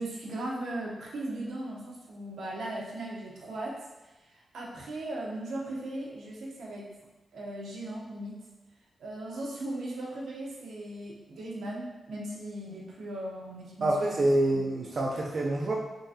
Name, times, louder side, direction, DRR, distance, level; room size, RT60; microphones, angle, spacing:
voice 1, 0.0-6.9 7.3-8.4 9.0-14.2, right 1 dB, 85° right, -3 dB, 0.8 m, -38 dB
voice 2, 13.8-15.7, right 1 dB, 50° right, -3 dB, 0.4 m, -26 dB
3.7 x 3.1 x 2.8 m, 1.1 s
wide cardioid pair, 130°, 0 cm